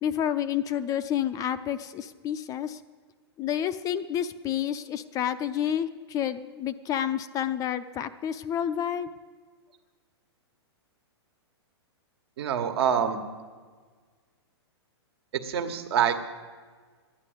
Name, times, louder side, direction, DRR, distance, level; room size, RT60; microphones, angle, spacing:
voice 1, 0.0-2.8 3.4-9.1, left 10 dB, 25° left, 12 dB, 0.5 m, -29 dB
voice 2, 12.4-13.2 15.3-16.3, right 8 dB, 65° right, 7 dB, 1.4 m, -26 dB
11.5 x 9.7 x 8.0 m, 1.5 s
hypercardioid pair, 130°, 14 cm